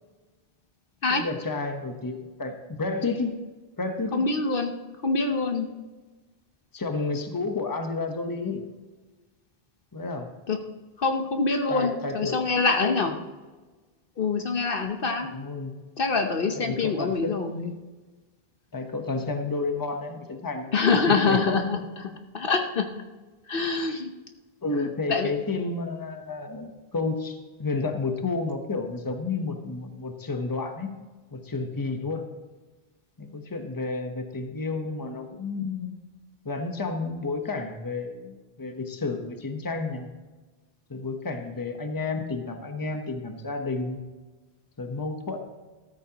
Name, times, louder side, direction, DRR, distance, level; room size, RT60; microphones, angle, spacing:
voice 1, 1.1-3.3 3.8-4.2 6.7-8.6 9.9-10.3 11.7-13.0 15.3-15.8 16.6-17.3 18.7-20.7 21.1-21.6 24.6-31.0 31.3-32.3 33.2-35.9 36.4-40.1 40.9-44.0 44.8-45.4, left 3 dB, 20° left, 5 dB, 1.0 m, -31 dB
voice 2, 4.1-4.7 5.0-5.7 10.5-10.6 11.0-13.1 14.2-15.3 16.0-17.7 20.7-22.9 23.5-24.1 25.1-25.3, left 4 dB, 60° left, 4 dB, 1.1 m, -25 dB
14.0 x 13.5 x 3.0 m, 1.3 s
omnidirectional pair, 1.1 m